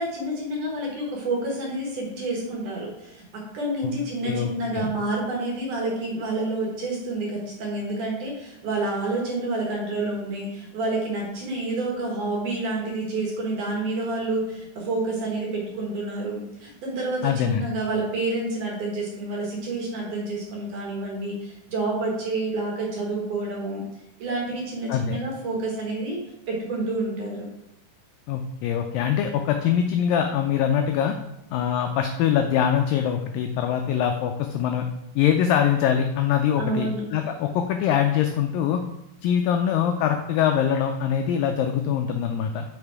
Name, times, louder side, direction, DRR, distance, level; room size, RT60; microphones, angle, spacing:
voice 1, 0.0-23.8 24.2-26.2 26.5-27.4 36.6-37.0, right 2 dB, 60° right, -2 dB, 2.6 m, -29 dB
voice 2, 4.2-4.9 17.2-17.7 24.9-25.2 28.3-31.2 31.5-34.9 35.2-38.8 39.2-42.6, left 9 dB, 85° left, 5 dB, 2.0 m, -23 dB
5.8 x 5.4 x 4.6 m, 0.85 s
omnidirectional pair, 4.5 m